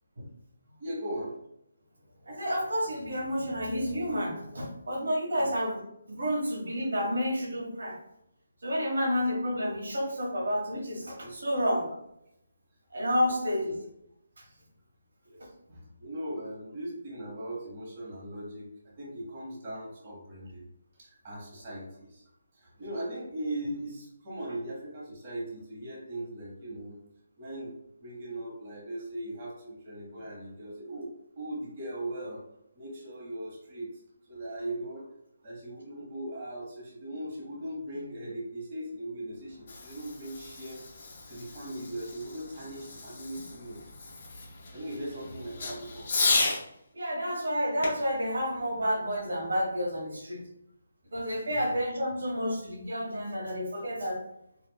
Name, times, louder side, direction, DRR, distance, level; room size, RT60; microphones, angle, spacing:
voice 1, 0.8-1.4 5.4-5.5 11.2-11.4 14.4-14.6 15.2-15.4 15.7-18.7 19.0-20.6 21.0-22.2 22.5-27.0 27.4-27.7 28.0-32.4 32.7-34.0 34.3-35.0 35.4-40.8 41.2-43.8 44.7-46.1 51.1-51.7, right 1 dB, 30° right, -5 dB, 1.0 m, -39 dB
voice 2, 2.2-5.8 6.1-8.0 8.6-11.9 12.9-13.7 46.9-50.4 51.1-54.2, equal, 80° right, -2 dB, 1.4 m, -30 dB
Fireworks, 39.4-46.6 47.8-49.5, left 3 dB, 40° left, 0.8 m, -34 dB
4.3 x 2.4 x 2.3 m, 0.79 s
hypercardioid pair, 165°, 0 cm